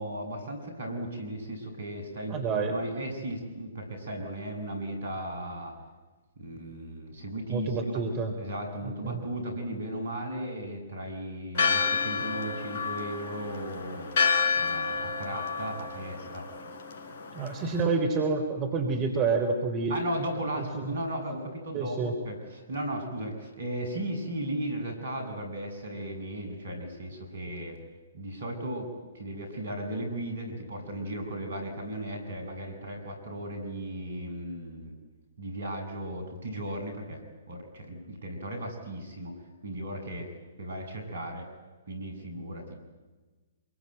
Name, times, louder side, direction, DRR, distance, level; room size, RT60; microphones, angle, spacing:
voice 1, 0.0-5.8 6.4-7.9 8.4-14.1 14.6-16.5 19.9-27.8 28.1-28.9 29.1-35.0 35.4-39.4 39.6-40.3 40.6-41.5 41.9-42.8, right 1 dB, 65° right, 5 dB, 7.7 m, -36 dB
voice 2, 2.3-2.8 7.5-8.3 9.0-9.2 17.3-20.0 20.6-21.0 21.7-22.1, right 4 dB, 30° right, 4 dB, 3.8 m, -28 dB
Church bell, 11.5-17.8, left 5 dB, 50° left, 4.0 m, -30 dB
27.0 x 23.5 x 9.2 m, 1.3 s
figure-of-eight pair, 125°, 0 cm